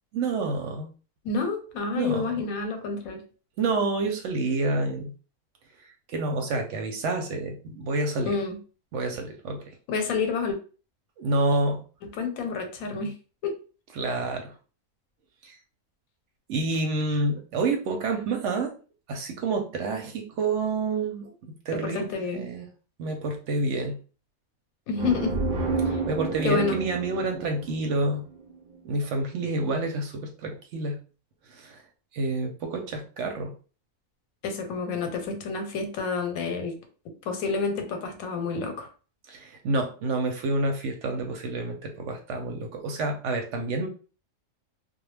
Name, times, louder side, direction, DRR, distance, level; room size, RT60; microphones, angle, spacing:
voice 1, 0.1-0.9 1.9-2.4 3.6-5.1 6.1-8.3 8.9-9.6 11.2-11.8 14.0-14.5 15.4-15.6 16.5-18.7 19.1-22.7 23.0-24.0 25.8-28.2 28.8-31.0 31.5-31.8 32.1-33.5 39.3-43.9, right 2 dB, 65° right, 4 dB, 0.8 m, -28 dB
voice 2, 1.2-3.2 8.2-8.6 9.9-10.6 12.0-13.1 13.4-13.5 21.8-22.4 24.9-25.4 25.9-26.0 26.4-26.8 34.4-36.7 37.3-38.9, left 4 dB, 90° left, 5 dB, 1.1 m, -29 dB
sound 1, 24.9-28.6, right 3 dB, 90° right, 0.4 m, -30 dB
2.3 x 2.1 x 3.1 m, 0.36 s
omnidirectional pair, 1.5 m